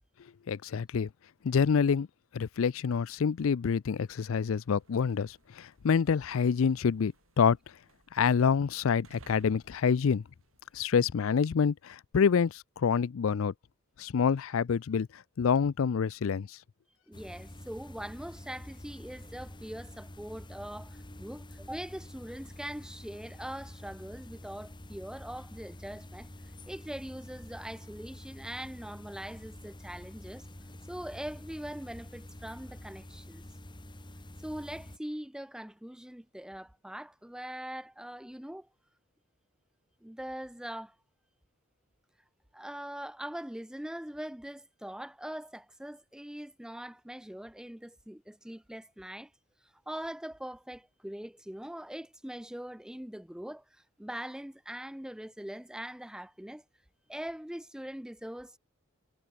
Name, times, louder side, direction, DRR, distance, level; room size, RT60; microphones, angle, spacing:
voice 1, 0.5-1.1 1.4-2.1 2.3-7.6 8.1-10.2 10.7-13.5 14.0-16.5, left 6 dB, 70° left, 0.4 m, -27 dB
sound 1, 3.9-11.7, right 2 dB, 75° right, 7.0 m, -62 dB
sound 2, 17.1-35.0, left 1 dB, 20° left, 2.0 m, -48 dB
voice 2, 17.1-26.3 26.7-30.5 30.9-33.4 34.4-38.7 40.0-40.9 42.5-49.3 49.9-56.6 57.1-58.6, right 1 dB, 5° right, 0.5 m, -42 dB
head